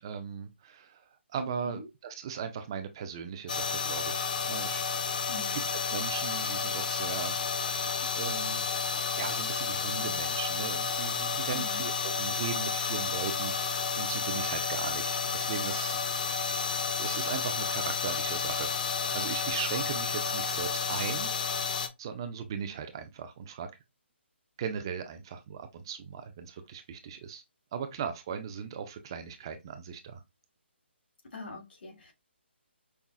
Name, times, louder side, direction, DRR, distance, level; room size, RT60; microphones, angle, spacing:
voice 1, 0.0-4.8 5.1-5.4 5.7-18.7 19.1-21.3 22.0-23.7 24.6-27.4 27.7-30.2, right 7 dB, 20° right, 0.4 m, -38 dB
voice 2, 1.4-1.9 5.3-5.6 11.5-11.9 31.3-32.1, left 2 dB, 60° left, 1.9 m, -42 dB
sound 1, 3.5-21.9, left 5 dB, 40° left, 0.5 m, -31 dB
5.4 x 2.3 x 2.3 m
hypercardioid pair, 170°, 6 cm